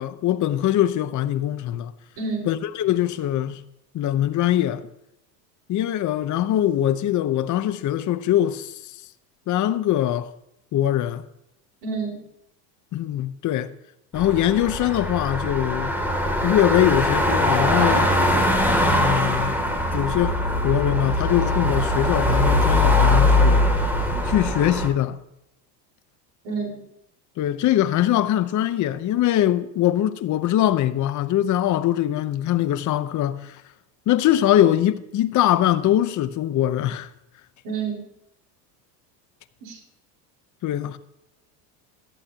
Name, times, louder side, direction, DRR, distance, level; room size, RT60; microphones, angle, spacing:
voice 1, 0.0-1.9 2.5-3.6 3.9-4.9 5.7-8.9 9.5-10.3 10.7-11.2 12.9-13.7 14.1-16.0 16.4-18.1 18.8-19.6 19.9-20.4 20.6-23.6 24.2-25.2 27.4-33.6 34.1-37.1 40.6-41.0, left 12 dB, 35° left, 0.8 m, -22 dB
voice 2, 2.2-2.5 11.8-12.2 26.4-26.8 37.6-38.0 39.6-39.8, right 4 dB, 60° right, 4.8 m, -29 dB
sound 1, 14.2-24.9, left 1 dB, 5° right, 2.6 m, -21 dB
17.0 x 12.0 x 2.9 m
supercardioid pair, 100°, 49 cm